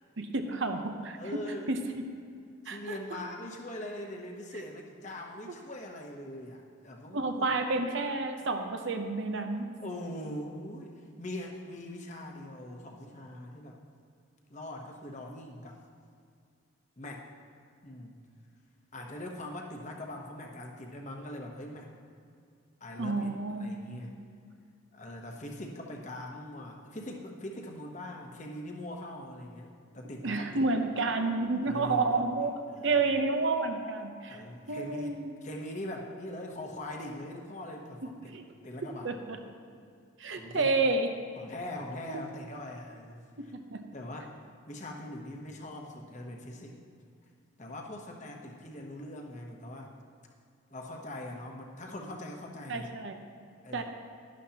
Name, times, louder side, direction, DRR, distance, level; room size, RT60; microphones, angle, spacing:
voice 1, 0.2-1.4 1.7-2.0 2.7-3.0 7.1-9.7 23.0-23.8 30.2-32.5 32.8-34.4 34.7-35.3 38.3-38.4 39.0-39.4 40.2-41.1 42.1-42.2 43.4-43.8 52.7-53.2 53.7-53.8, right 3 dB, 60° right, 5 dB, 0.8 m, -30 dB
voice 2, 1.2-1.7 2.6-7.5 9.8-13.8 14.5-15.8 17.0-17.3 17.8-18.2 18.9-21.9 22.8-24.2 24.9-30.6 31.6-32.9 34.3-35.1 35.4-38.4 38.6-39.1 40.3-40.8 41.4-43.5 43.9-44.3 44.7-46.8 47.6-49.9 50.7-52.9 53.6-53.8, left 1 dB, 35° left, 1 dB, 1.0 m, -42 dB
11.5 x 11.5 x 2.9 m, 2.3 s
head